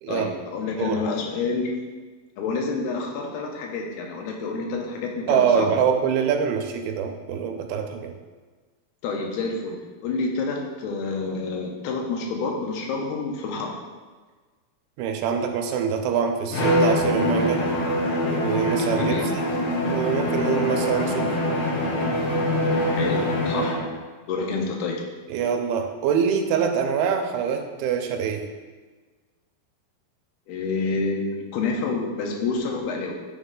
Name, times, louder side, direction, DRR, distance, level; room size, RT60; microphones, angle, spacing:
voice 1, 0.1-1.7 2.4-5.7 9.0-13.7 19.0-19.3 22.9-23.7 24.3-25.0 30.5-33.2, left 4 dB, 85° left, 1 dB, 2.8 m, -28 dB
voice 2, 5.3-8.1 15.0-17.6 18.3-19.5 19.8-21.4 25.3-28.4, right 7 dB, 85° right, 5 dB, 2.5 m, -24 dB
Bowed string instrument, 16.5-23.9, left 1 dB, 65° left, 2.3 m, -24 dB
9.2 x 3.1 x 3.7 m, 1.4 s
omnidirectional pair, 4.4 m